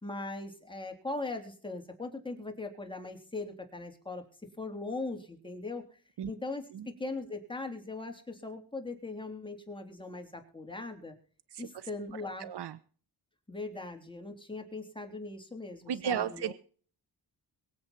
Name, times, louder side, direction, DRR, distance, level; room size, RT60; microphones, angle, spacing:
voice 1, 0.0-4.3 4.6-5.8 6.3-11.1 11.6-12.5 13.5-16.5, left 3 dB, 10° left, 3 dB, 3.4 m, -40 dB
voice 2, 11.5-11.9 12.1-12.8 15.9-16.5, right 8 dB, 75° right, 14 dB, 1.0 m, -35 dB
23.0 x 8.0 x 4.3 m, 0.43 s
wide cardioid pair, 130°, 41 cm